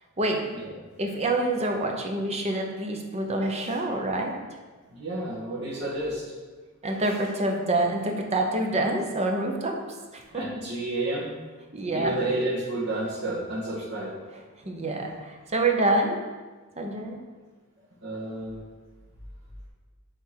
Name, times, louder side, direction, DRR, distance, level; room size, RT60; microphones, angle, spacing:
voice 1, 1.0-4.3 6.8-9.8 10.1-10.4 11.7-12.2 14.6-16.2 16.8-17.2, right 2 dB, 30° right, 2 dB, 0.9 m, -26 dB
voice 2, 4.9-6.2 10.3-11.3 11.9-14.1 18.0-18.6, right 1 dB, 70° right, -10 dB, 1.8 m, -30 dB
9.3 x 3.6 x 4.6 m, 1.3 s
head